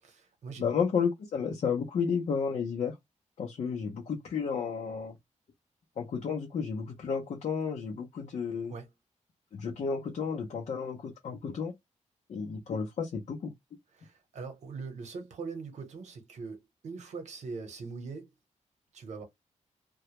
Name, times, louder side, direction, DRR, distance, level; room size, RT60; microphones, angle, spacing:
voice 1, 0.0-0.7 8.7-8.9 13.9-18.3 18.9-19.2, right 4 dB, 65° right, 0.8 m, -41 dB
voice 2, 0.6-3.0 3.4-5.2 6.0-8.7 9.5-11.7 12.3-13.5, left 6 dB, 60° left, 0.6 m, -32 dB
2.2 x 2.0 x 2.8 m
wide cardioid pair, 170°, 13 cm